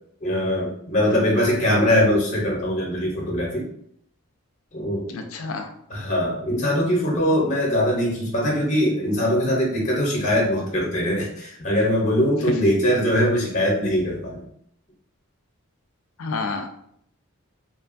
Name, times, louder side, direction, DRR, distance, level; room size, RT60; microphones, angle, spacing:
voice 1, 0.2-3.7 4.7-5.1 5.9-14.4, equal, 35° left, -3 dB, 0.7 m, -22 dB
voice 2, 5.1-5.7 16.2-16.7, left 3 dB, 65° left, 6 dB, 0.4 m, -29 dB
2.8 x 2.3 x 2.5 m, 0.69 s
head